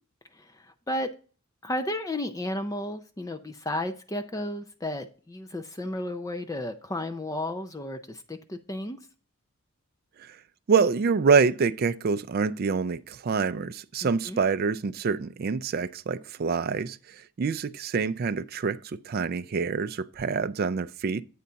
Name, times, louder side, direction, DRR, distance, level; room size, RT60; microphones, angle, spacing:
voice 1, 0.3-1.1 1.6-9.0 14.0-14.4, left 1 dB, 15° left, 0.5 m, -33 dB
voice 2, 10.7-21.2, right 5 dB, 45° right, 0.3 m, -26 dB
8.4 x 4.0 x 5.6 m
head